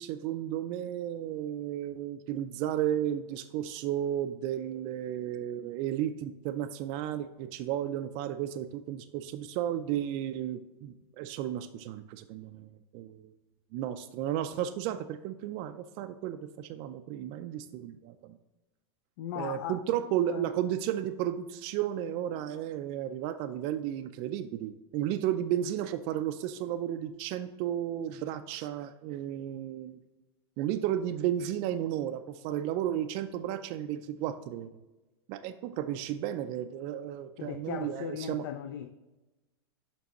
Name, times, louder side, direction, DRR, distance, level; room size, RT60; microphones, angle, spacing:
voice 1, 0.0-13.3 13.7-18.4 19.4-30.0 30.6-34.7 35.3-38.5, right 11 dB, 40° right, 0.4 m, -33 dB
voice 2, 19.2-19.8 20.3-20.5 37.4-38.9, left 9 dB, 55° left, 0.5 m, -38 dB
7.0 x 5.3 x 2.9 m
hypercardioid pair, 130°, 14 cm